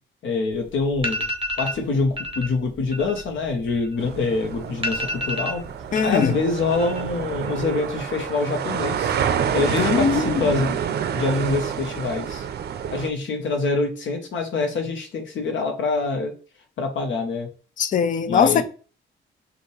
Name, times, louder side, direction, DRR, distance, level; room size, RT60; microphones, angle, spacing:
voice 1, 0.2-1.3 1.6-5.7 6.0-9.2 9.5-10.8 11.1-12.4 12.9-16.3 16.8-17.5 18.3-18.6, left 3 dB, 70° left, 1.0 m, -25 dB
sound 1, 0.5-0.6 0.9-1.8 2.2-2.5 2.8-4.2 4.5-4.6 4.8-6.3 6.6-7.2 7.5-8.0, equal, 25° right, 0.9 m, -29 dB
sound 2, 4.0-13.1, right 8 dB, 55° right, 0.5 m, -28 dB
voice 2, 5.9-6.3 9.8-10.3 17.8-18.6, left 7 dB, 40° left, 0.4 m, -20 dB
5.5 x 2.5 x 3.3 m
cardioid pair, 120°, 21 cm